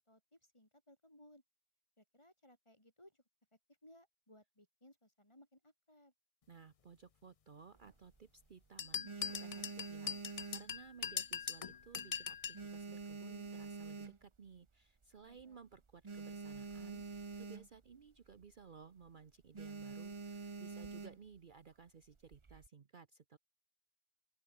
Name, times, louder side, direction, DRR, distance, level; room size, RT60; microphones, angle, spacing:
voice 1, 0.1-1.4 2.0-3.2 3.8-6.1 15.2-15.6 20.8-21.0, left 1 dB, 25° left, 5.0 m, -63 dB
voice 2, 6.5-23.4, right 6 dB, 50° right, 1.0 m, -58 dB
sound 1, 7.7-8.5 8.9-11.4 11.6-12.0 12.3-14.6 15.0-15.1 15.3-15.4 15.7-17.9 18.3-18.5 18.8-19.1 19.5-21.4 22.1-22.7, right 4 dB, 30° right, 0.8 m, -47 dB
sound 2, 8.8-12.6, left 7 dB, 40° left, 0.5 m, -41 dB
open air
omnidirectional pair, 1.2 m